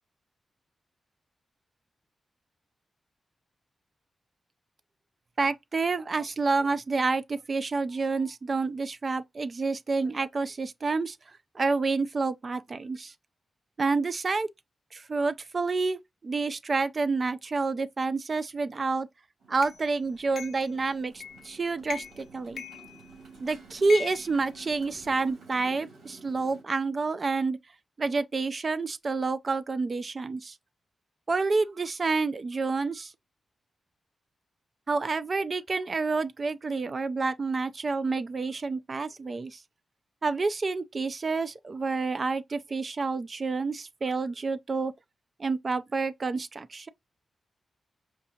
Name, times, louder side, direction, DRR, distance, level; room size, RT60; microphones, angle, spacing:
voice 1, 5.4-11.2 11.5-13.1 13.8-14.5 14.9-19.1 19.5-22.6 23.4-27.6 28.0-30.6 31.3-33.1 34.9-39.6 40.2-44.9 45.4-46.9, right 4 dB, 40° right, 0.4 m, -29 dB
Motorcycle, 19.4-26.6, right 3 dB, 90° right, 2.7 m, -52 dB
sound 1, 19.6-19.8 20.4-20.7 21.2-21.5 21.8-22.3 22.6-23.4 23.9-25.1, left 8 dB, 85° left, 0.6 m, -40 dB
5.0 x 2.7 x 2.7 m
wide cardioid pair, 105°, 0 cm